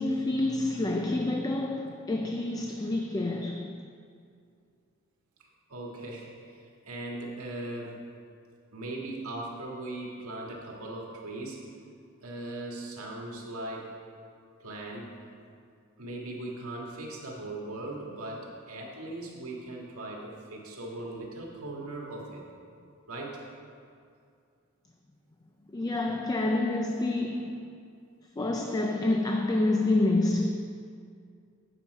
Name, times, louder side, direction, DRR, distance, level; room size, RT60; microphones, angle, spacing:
voice 1, 0.0-3.8 25.7-27.7 28.4-30.5, left 2 dB, 15° left, 0.3 m, -28 dB
voice 2, 5.7-8.0 8.7-11.6 12.2-13.9 14.6-15.2 16.0-22.4 23.1-23.4, right 2 dB, 80° right, 1.7 m, -39 dB
8.9 x 7.0 x 4.7 m
head